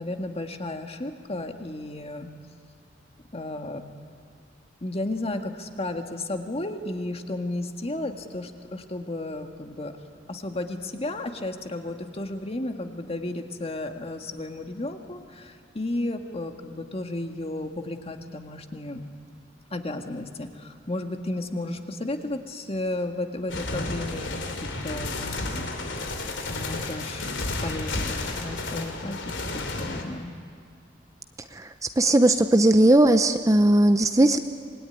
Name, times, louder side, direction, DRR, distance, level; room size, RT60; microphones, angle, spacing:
voice 1, 0.0-2.3 3.3-3.8 4.8-9.9 10.3-19.0 19.7-26.1 26.5-27.3 27.6-30.3, left 2 dB, 35° left, 5 dB, 1.7 m, -33 dB
sound 1, 23.5-30.0, left 2 dB, 90° left, 3.0 m, -32 dB
voice 2, 32.0-34.4, right 1 dB, 20° right, 9 dB, 0.7 m, -18 dB
26.0 x 20.5 x 9.7 m, 2.2 s
head